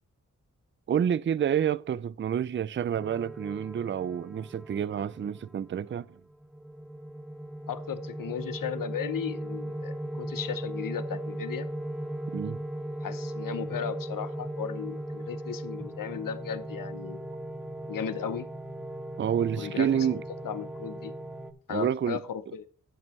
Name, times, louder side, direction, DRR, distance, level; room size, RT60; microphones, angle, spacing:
voice 1, 0.9-6.1 12.3-12.6 19.2-20.2 21.7-22.2, right 9 dB, 35° right, 0.4 m, -28 dB
sound 1, 2.9-5.6 6.3-21.5, right 1 dB, ahead, 1.0 m, -38 dB
voice 2, 7.7-11.7 13.0-17.2 17.9-18.5 19.6-21.1 21.7-22.7, left 8 dB, 75° left, 0.8 m, -36 dB
11.0 x 8.5 x 3.2 m
cardioid pair, 55°, 33 cm